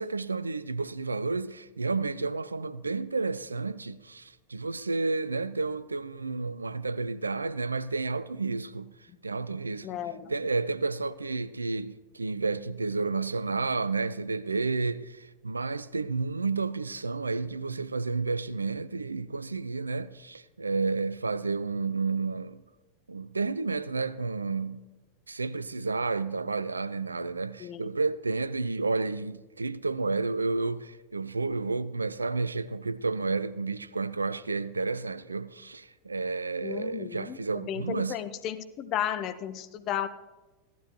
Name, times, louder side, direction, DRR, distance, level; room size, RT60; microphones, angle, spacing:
voice 1, 0.0-8.9 9.2-9.9 10.3-22.6 23.1-24.8 25.3-38.2, right 3 dB, 80° right, 0.4 m, -31 dB
voice 2, 9.8-10.3 27.6-27.9 36.6-40.1, left 10 dB, 35° left, 0.7 m, -34 dB
15.5 x 12.0 x 3.0 m
figure-of-eight pair, 90°, 0 cm